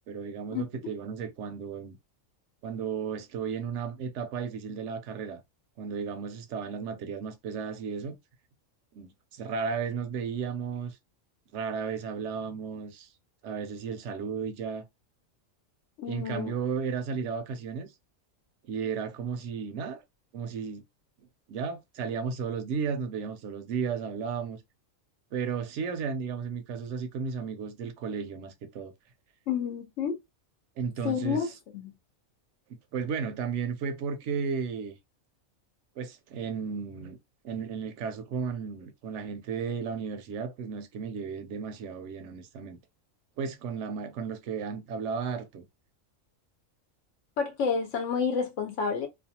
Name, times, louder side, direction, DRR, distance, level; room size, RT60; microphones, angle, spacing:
voice 1, 0.1-2.0 2.6-5.4 5.8-8.2 8.9-11.0 11.5-13.1 13.4-14.9 16.1-17.9 18.7-20.0 20.3-20.8 21.5-24.6 25.3-28.9 30.8-31.5 32.9-35.0 36.0-37.2 37.4-42.8 43.4-45.6, right 6 dB, 70° right, 0.8 m, -34 dB
voice 2, 16.0-16.5 29.5-30.2 31.0-31.5 31.7-31.9 47.4-49.1, left 6 dB, 70° left, 0.9 m, -29 dB
2.5 x 2.2 x 2.7 m
omnidirectional pair, 1.4 m